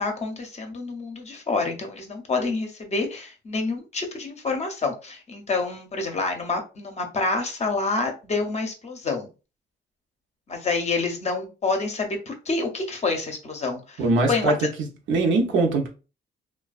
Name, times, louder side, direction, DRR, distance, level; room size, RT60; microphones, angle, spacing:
voice 1, 0.0-9.3 10.5-14.0 14.3-14.5, left 3 dB, 35° left, 0.6 m, -27 dB
voice 2, 14.0-15.9, right 3 dB, 75° right, 0.7 m, -22 dB
2.4 x 2.2 x 2.3 m
cardioid pair, 90°, 20 cm